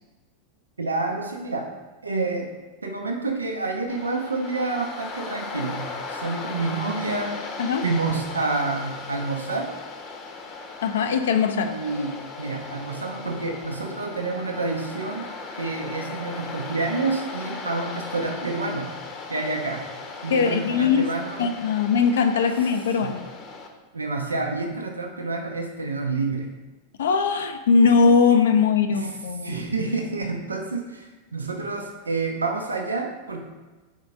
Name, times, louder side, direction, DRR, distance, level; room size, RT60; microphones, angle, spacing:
voice 1, 0.8-1.7 2.0-2.5 2.8-7.4 7.8-9.7 11.6-15.3 15.6-18.9 19.3-19.8 20.2-21.5 23.0-23.1 23.9-26.5 28.9-29.1 29.4-33.4, right 3 dB, 75° right, 2 dB, 0.6 m, -28 dB
Waves surf, 3.9-23.7, left 4 dB, 30° left, 0.8 m, -37 dB
voice 2, 10.8-11.7 20.3-21.1 21.4-23.2 27.0-29.6, left 5 dB, 60° left, 7 dB, 0.4 m, -20 dB
4.9 x 3.6 x 5.2 m, 1.2 s
figure-of-eight pair, 90°, 0 cm